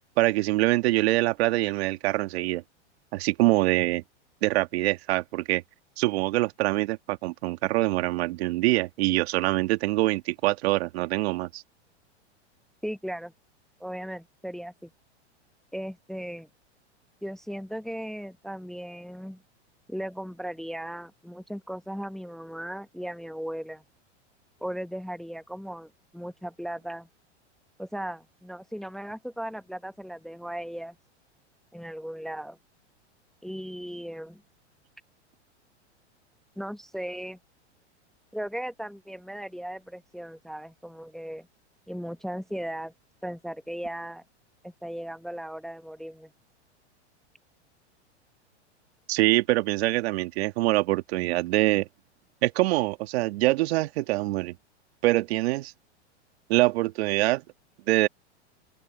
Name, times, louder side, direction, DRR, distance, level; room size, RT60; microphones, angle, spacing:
voice 1, 0.2-2.6 3.1-4.0 4.4-5.6 6.0-11.6 49.1-51.9 52.4-54.5 55.0-55.7 56.5-57.4 57.9-58.1, right 19 dB, 60° right, 1.9 m, -24 dB
voice 2, 12.8-13.3 13.8-14.9 15.7-16.5 17.2-19.4 19.9-23.8 24.6-27.1 27.8-31.0 31.7-32.6 33.4-34.4 36.6-37.4 38.3-41.5 41.9-42.9 43.2-44.2 44.6-46.3, equal, ahead, 1.0 m, -37 dB
open air
hypercardioid pair, 115°, 35 cm